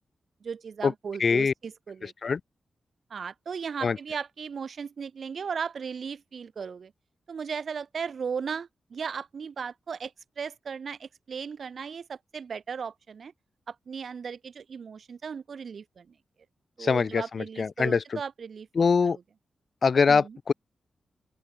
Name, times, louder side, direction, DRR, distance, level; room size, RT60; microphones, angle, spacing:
voice 1, 0.4-2.1 3.1-6.9 7.3-13.3 13.7-16.0 16.8-18.7 19.0-19.2 20.1-20.4, right 6 dB, 65° right, 3.2 m, -36 dB
voice 2, 1.2-1.5 2.0-2.4 3.8-4.0 16.8-18.2 18.8-19.2 19.8-20.5, left 5 dB, 60° left, 2.2 m, -23 dB
open air
cardioid pair, 55°, 0 cm